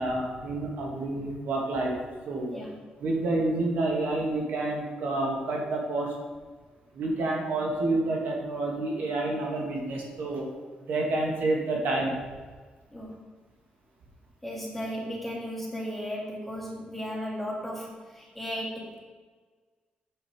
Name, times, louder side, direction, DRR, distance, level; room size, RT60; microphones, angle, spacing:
voice 1, 0.0-2.0 2.3-2.5 3.0-6.1 6.9-10.5 10.9-12.2, right 2 dB, 85° right, -1 dB, 1.7 m, -29 dB
voice 2, 14.4-19.0, equal, 5° left, -3 dB, 1.8 m, -35 dB
7.2 x 5.4 x 4.8 m, 1.4 s
cardioid pair, 130°, 3 cm